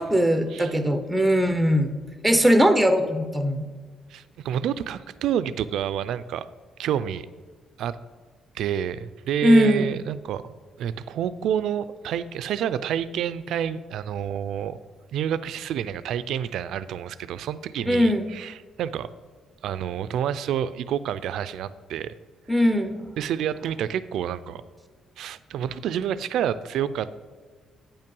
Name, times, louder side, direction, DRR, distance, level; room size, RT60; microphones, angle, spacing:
voice 1, 0.0-2.0 2.2-3.6 9.4-9.9 17.9-18.3 22.5-23.1, equal, ahead, 8 dB, 0.5 m, -20 dB
voice 2, 4.1-6.5 6.8-7.3 7.8-8.0 8.5-10.4 10.8-14.8 15.1-19.1 19.6-22.1 23.2-24.6 25.2-27.2, right 9 dB, 80° right, 14 dB, 0.4 m, -28 dB
8.7 x 5.5 x 5.3 m, 1.5 s
cardioid pair, 145°, 0 cm